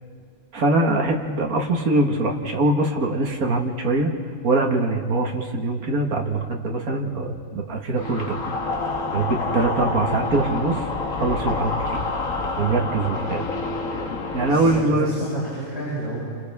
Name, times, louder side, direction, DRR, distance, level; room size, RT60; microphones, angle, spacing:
voice 1, 0.5-4.1 4.4-8.4 9.1-10.9 11.1-12.0 12.6-13.4 14.3-15.1, right 2 dB, 80° right, 1 dB, 2.1 m, -23 dB
sound 1, 8.0-14.8, left 3 dB, 65° left, 1.9 m, -28 dB
voice 2, 14.5-16.2, right 1 dB, 30° right, -10 dB, 8.2 m, -31 dB
29.5 x 26.0 x 3.6 m, 2.1 s
omnidirectional pair, 1.5 m